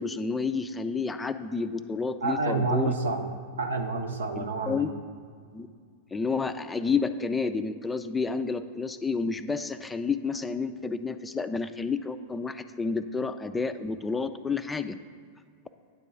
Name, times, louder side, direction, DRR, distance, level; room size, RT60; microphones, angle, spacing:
voice 1, 0.0-2.9 4.4-4.9 5.5-5.7 6.1-15.0, left 4 dB, 10° left, 10 dB, 0.4 m, -30 dB
voice 2, 2.2-4.9, right 3 dB, 75° right, 6 dB, 0.7 m, -29 dB
9.6 x 3.7 x 6.9 m, 2.1 s
figure-of-eight pair, 90°, 0 cm